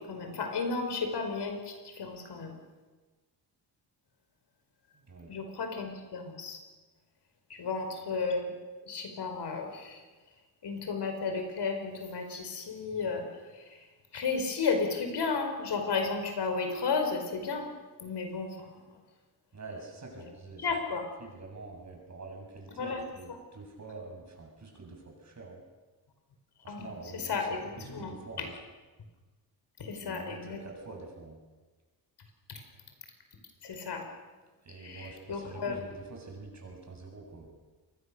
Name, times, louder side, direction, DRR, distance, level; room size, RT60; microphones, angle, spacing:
voice 1, 0.0-2.5 5.3-6.6 7.5-8.4 8.8-10.0 10.6-13.3 13.5-13.8 14.1-17.7 18.0-18.7 20.2-20.3 20.6-21.0 22.8-23.0 23.3-23.4 26.7-26.9 27.1-28.5 29.8-30.6 32.5-32.6 33.6-34.0 34.8-35.8, left 4 dB, 70° left, 5 dB, 5.0 m, -33 dB
voice 2, 4.9-5.3 19.5-20.7 21.2-25.6 26.6-27.5 27.8-28.5 29.9-31.4 34.6-37.6, right 3 dB, 40° right, 1 dB, 7.5 m, -46 dB
27.0 x 21.5 x 6.8 m, 1.3 s
wide cardioid pair, 120°, 41 cm